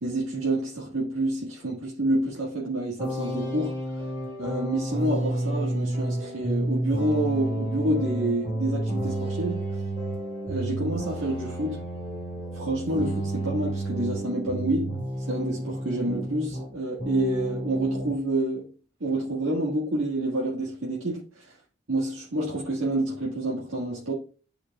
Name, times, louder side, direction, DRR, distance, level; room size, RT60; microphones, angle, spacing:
voice 1, 0.0-3.8 4.4-9.6 10.4-11.8 12.5-18.7 19.0-21.4 21.9-24.1, right 1 dB, 85° right, 1.6 m, -28 dB
sound 1, 3.0-16.7 17.0-18.2, right 1 dB, 25° right, 3.0 m, -31 dB
11.0 x 4.8 x 2.3 m
head